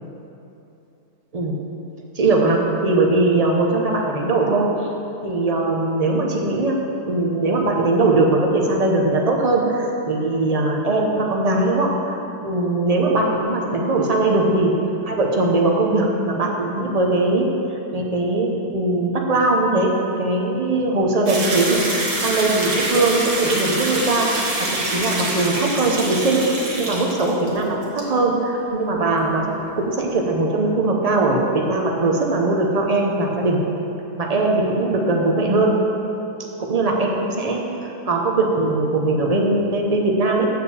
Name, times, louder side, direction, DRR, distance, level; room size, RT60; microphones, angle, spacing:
voice 1, 2.2-4.7 5.2-6.8 7.1-12.2 12.4-14.7 15.1-17.5 17.9-19.9 20.2-24.5 24.8-26.4 26.8-29.4 29.8-33.6 34.2-35.7 36.6-37.6 38.1-40.5, right 2 dB, 40° right, 0 dB, 0.5 m, -20 dB
sound 1, 21.3-27.6 27.8-28.0, right 2 dB, 75° right, 1.9 m, -25 dB
7.2 x 4.7 x 6.9 m, 2.8 s
omnidirectional pair, 1.7 m